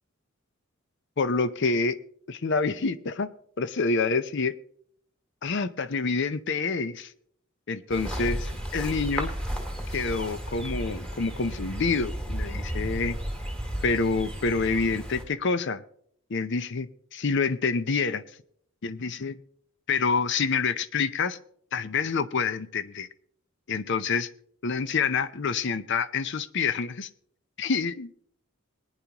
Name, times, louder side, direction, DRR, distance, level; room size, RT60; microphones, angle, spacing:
voice 1, 1.2-2.0 2.3-3.3 3.6-4.5 5.4-7.1 7.7-9.3 9.9-13.2 13.8-15.8 16.3-18.2 18.8-19.4 19.9-21.4 21.7-23.1 23.7-24.3 24.6-27.1 27.6-28.2, left 4 dB, 60° left, 14 dB, 0.6 m, -27 dB
sound 1, 7.9-15.2, equal, 5° left, 2.0 m, -33 dB
21.0 x 9.8 x 2.9 m, 0.64 s
head